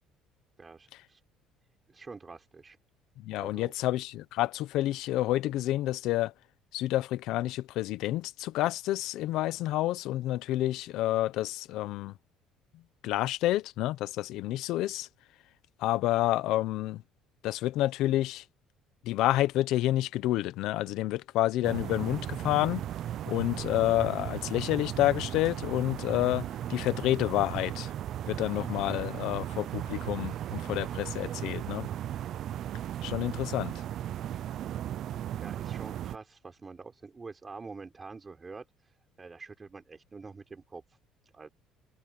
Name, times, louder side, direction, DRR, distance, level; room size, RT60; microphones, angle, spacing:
voice 1, 0.6-1.2 1.9-2.8 3.4-3.7 35.4-38.9 39.2-41.0 41.3-41.5, right 4 dB, 20° right, 4.0 m, -46 dB
voice 2, 3.2-6.3 6.7-12.1 13.0-15.1 15.8-17.0 17.4-18.4 19.0-22.8 23.3-27.9 28.3-31.9 33.0-33.8, left 15 dB, 70° left, 0.8 m, -29 dB
sound 1, 21.6-36.2, right 11 dB, 55° right, 0.4 m, -36 dB
cardioid pair, 130°, 0 cm